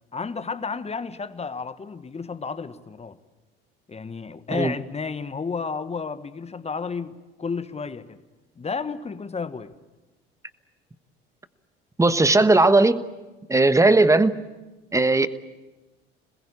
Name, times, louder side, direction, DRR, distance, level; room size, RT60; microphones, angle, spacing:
voice 1, 0.1-3.2 3.9-8.2 8.6-9.7, left 5 dB, 20° left, 1.4 m, -32 dB
voice 2, 12.0-13.0 13.5-14.4 14.9-15.3, right 2 dB, 10° right, 1.2 m, -17 dB
27.5 x 21.0 x 8.6 m
figure-of-eight pair, 65°, 30 cm